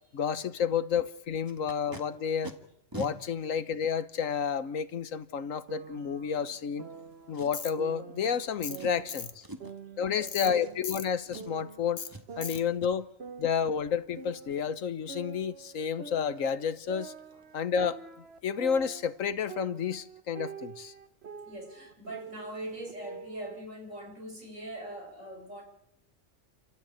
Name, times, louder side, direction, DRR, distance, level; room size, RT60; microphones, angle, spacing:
voice 1, 0.1-2.5 2.9-6.9 7.3-9.4 10.0-12.0 12.4-13.1 13.4-17.1 17.5-18.0 18.4-20.9, left 7 dB, 85° left, 1.4 m, -30 dB
Packing tape duct tape, 1.5-2.0 2.4-2.5 2.9-3.1 3.9-4.0 7.3-7.8 8.2-8.4 8.7-9.0 9.4-9.8 10.4-11.0 11.3-11.7 12.1-12.3 12.5-12.9 16.0-16.1 16.4-16.5 16.9-17.0 17.3-17.6 17.8-17.9, right 1 dB, 15° right, 1.8 m, -44 dB
sound 1, 5.7-7.3 7.8-9.3 9.6-11.9 12.3-14.7 15.1-19.2 19.5-23.5, right 6 dB, 55° right, 1.2 m, -46 dB
Tools, 7.5-7.7 8.6-8.8 9.1-9.3 10.3-10.5 10.8-11.1 12.0-12.1 12.4-12.6, left 7 dB, 65° left, 1.4 m, -38 dB
voice 2, 10.1-10.6 21.5-25.6, right 1 dB, 80° right, 5.6 m, -42 dB
29.5 x 13.5 x 8.7 m
omnidirectional pair, 1.3 m